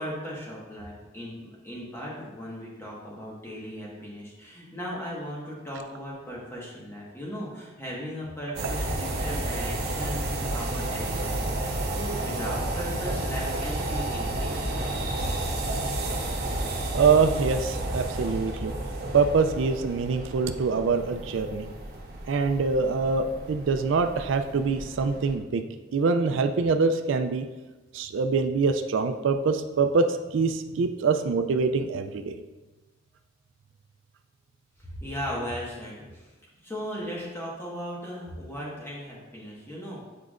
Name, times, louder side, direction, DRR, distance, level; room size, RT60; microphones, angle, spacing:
voice 1, 0.0-14.5 15.2-15.4 34.9-36.3 36.6-40.0, equal, 15° left, -5 dB, 1.4 m, -37 dB
sound 1, 8.6-25.4, right 1 dB, 55° right, 0.8 m, -31 dB
voice 2, 16.9-18.7 19.1-21.7 22.3-25.6 25.9-27.5 27.9-32.3, right 4 dB, 80° right, 7 dB, 0.4 m, -24 dB
8.2 x 4.6 x 2.5 m, 1.2 s
head